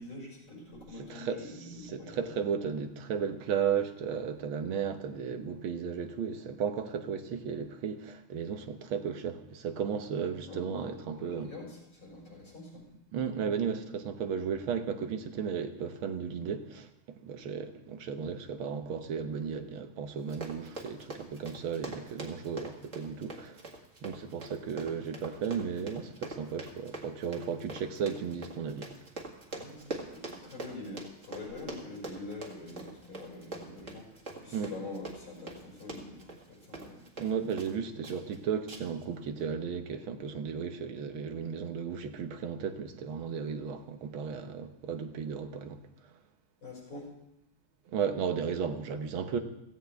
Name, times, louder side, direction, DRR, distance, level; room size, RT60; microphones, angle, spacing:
voice 1, 0.0-2.3 10.5-12.9 29.5-34.1 34.3-37.0 46.6-47.1, left 2 dB, 65° left, 6.5 m, -45 dB
voice 2, 1.0-1.4 1.9-11.5 13.1-16.9 17.2-23.6 24.0-28.9 34.5-34.7 37.2-45.8 47.9-49.4, right 7 dB, 80° right, 1.8 m, -34 dB
Run, 20.2-37.8 38.0-38.4 38.7-39.0 39.4-39.5, right 2 dB, 35° right, 2.1 m, -44 dB
16.5 x 15.5 x 3.5 m
omnidirectional pair, 2.3 m